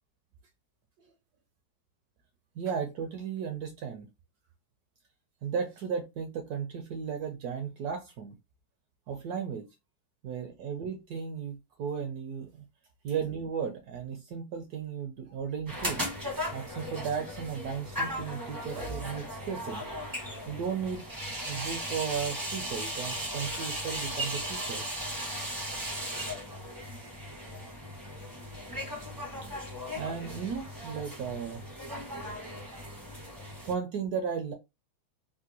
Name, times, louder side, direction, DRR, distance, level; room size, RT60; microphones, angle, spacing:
voice 1, 2.6-4.1 5.4-8.3 9.1-9.7 10.2-12.6 13.0-16.1 16.5-19.9 20.5-21.0 21.4-24.8 30.0-31.6 33.7-34.5, right 7 dB, 75° right, 0.9 m, -35 dB
sound 1, 15.7-33.7, equal, 25° right, 0.4 m, -37 dB
3.6 x 2.2 x 2.7 m
omnidirectional pair, 2.1 m